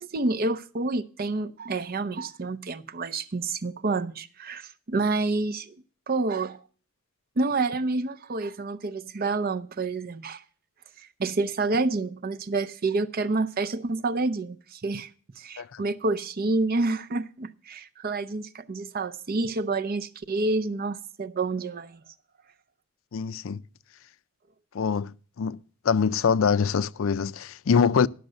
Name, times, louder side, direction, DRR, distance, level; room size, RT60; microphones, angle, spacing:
voice 1, 0.1-5.7 6.1-6.6 7.4-10.4 11.2-15.1 15.4-22.0, right 3 dB, 50° right, 0.6 m, -28 dB
voice 2, 23.1-23.6 24.7-25.6 25.8-28.1, left 6 dB, 75° left, 0.5 m, -24 dB
12.0 x 6.4 x 7.9 m
head